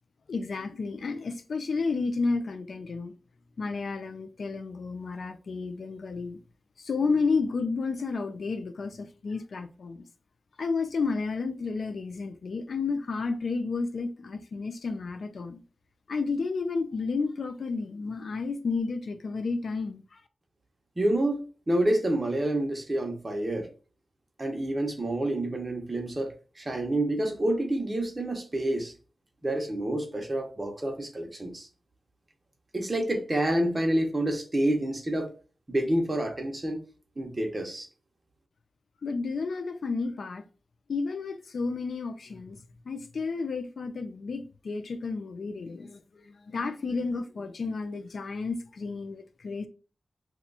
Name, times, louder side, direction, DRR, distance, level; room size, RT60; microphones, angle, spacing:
voice 1, 0.3-3.1 3.6-6.4 6.8-10.0 10.6-15.6 16.1-20.0 39.0-40.4 40.9-42.6 42.9-49.7, left 4 dB, 75° left, 0.4 m, -31 dB
voice 2, 21.0-23.7 24.4-28.9 29.4-31.7 32.7-35.3 35.7-36.8 37.2-37.9, right 1 dB, 25° right, 0.8 m, -28 dB
2.9 x 2.3 x 3.9 m
wide cardioid pair, 115°, 0 cm